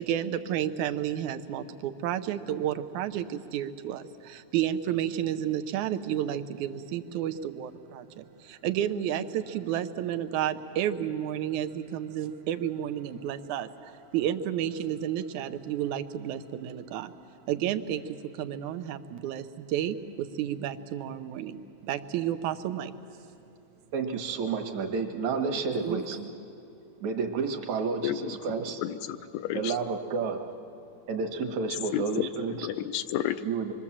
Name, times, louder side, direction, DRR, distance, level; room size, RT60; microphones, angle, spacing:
voice 1, 0.0-17.1 17.5-21.6 21.8-22.9 25.8-26.3, right 10 dB, 90° right, 9 dB, 2.3 m, -31 dB
voice 2, 23.9-26.2 27.0-28.8 29.5-30.4 31.1-32.7 33.4-33.7, right 5 dB, 70° right, 5 dB, 2.7 m, -30 dB
voice 3, 28.0-28.3 28.8-29.8 31.9-32.3 32.6-33.4, left 12 dB, 75° left, 11 dB, 1.9 m, -31 dB
26.0 x 23.0 x 7.3 m, 2.6 s
omnidirectional pair, 3.3 m